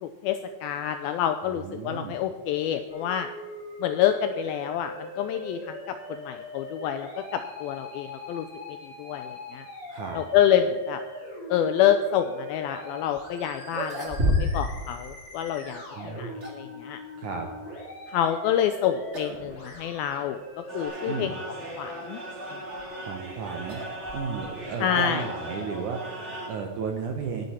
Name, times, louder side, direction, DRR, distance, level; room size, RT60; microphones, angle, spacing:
voice 1, 0.0-3.3 3.8-8.5 8.8-9.7 10.1-11.0 11.5-17.0 18.1-20.4 20.7-21.3 21.8-22.2 24.8-25.2, left 10 dB, 85° left, 8 dB, 2.1 m, -27 dB
voice 2, 1.5-2.2 9.9-10.2 15.9-16.4 17.2-17.5 21.1-21.3 23.0-23.8 24.1-27.4, right 5 dB, 70° right, 3 dB, 1.9 m, -34 dB
Musical instrument, 2.9-20.9, left 1 dB, 65° left, 7.3 m, -42 dB
sound 1, 13.2-13.3 13.7-14.8 15.0-15.1 16.0-16.7 18.5-18.8 19.1-19.4 19.7-19.8 20.6-20.7 22.5-24.6, equal, 50° right, 0.8 m, -30 dB
sound 2, 20.7-26.5, right 1 dB, 25° right, 1.9 m, -37 dB
18.5 x 9.5 x 4.3 m, 1.3 s
omnidirectional pair, 4.8 m